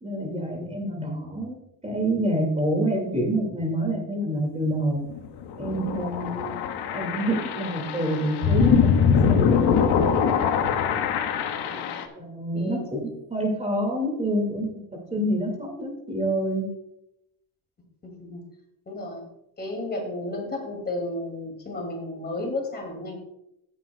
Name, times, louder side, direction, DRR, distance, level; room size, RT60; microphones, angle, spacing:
voice 1, 0.0-1.6 1.8-5.0 5.6-6.5 6.9-8.9 9.3-10.2 12.1-14.7 15.1-16.7, right 1 dB, 15° right, 1 dB, 2.2 m, -27 dB
sound 1, 5.1-12.1, left 7 dB, 65° left, 1.2 m, -23 dB
voice 2, 11.6-12.0 12.5-13.1 18.0-18.4 18.9-19.2 19.6-23.2, left 2 dB, 20° left, 2 dB, 2.4 m, -33 dB
14.5 x 9.0 x 2.3 m, 0.82 s
cardioid pair, 140°, 43 cm